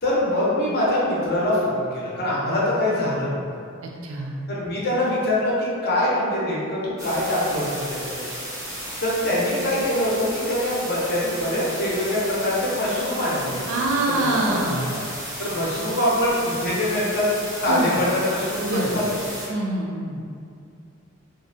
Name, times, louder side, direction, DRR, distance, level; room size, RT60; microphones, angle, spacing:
voice 1, 0.0-3.4 4.5-8.2 9.0-13.6 14.1-15.0 15.4-17.3 17.5-19.2, left 1 dB, 50° left, -6 dB, 0.6 m, -24 dB
voice 2, 4.0-4.4 13.7-15.0 17.7-18.0 18.6-18.9 19.5-20.2, right 2 dB, 75° right, -1 dB, 0.4 m, -25 dB
sound 1, 7.0-19.5, equal, 15° right, 0.5 m, -34 dB
2.5 x 2.1 x 2.5 m, 2.4 s
head